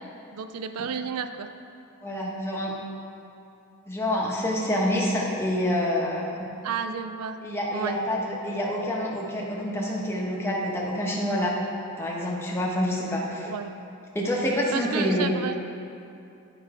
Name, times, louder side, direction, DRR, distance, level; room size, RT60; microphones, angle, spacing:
voice 1, 0.3-1.5 6.6-7.4 7.7-8.0 13.5-13.7 14.7-15.6, right 6 dB, 85° right, 9 dB, 0.4 m, -31 dB
voice 2, 2.0-2.8 3.9-6.5 7.4-11.6 12.0-13.5 14.1-15.3, left 1 dB, 10° left, -4 dB, 1.1 m, -27 dB
9.4 x 5.4 x 5.0 m, 2.6 s
head